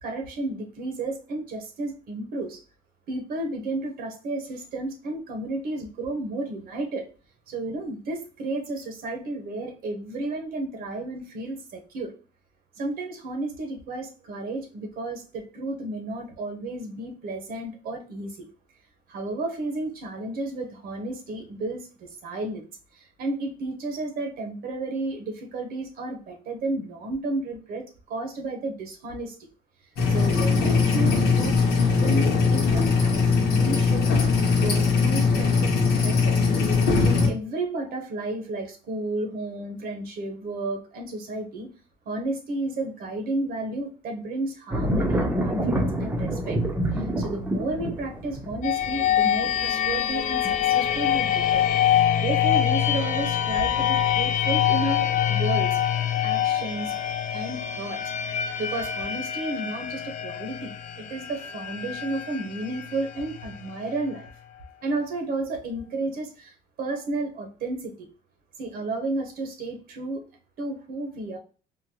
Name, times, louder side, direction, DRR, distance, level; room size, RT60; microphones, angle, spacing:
voice 1, 0.0-2.6 3.1-7.1 7.5-12.1 12.8-18.5 19.1-22.6 22.9-29.4 30.1-34.1 34.6-36.4 36.7-41.7 42.1-46.6 46.9-55.8 56.2-58.0 58.3-64.3 64.8-68.1 68.6-70.2 70.6-71.4, right 2 dB, 65° right, 0.8 m, -32 dB
sound 1, 30.0-37.3, left 4 dB, 80° left, 1.0 m, -21 dB
sound 2, 44.7-54.3 54.7-55.3, right 1 dB, 10° right, 0.6 m, -29 dB
sound 3, 48.6-64.3, left 10 dB, 50° left, 0.4 m, -25 dB
3.7 x 2.1 x 2.8 m
cardioid pair, 110°, 17 cm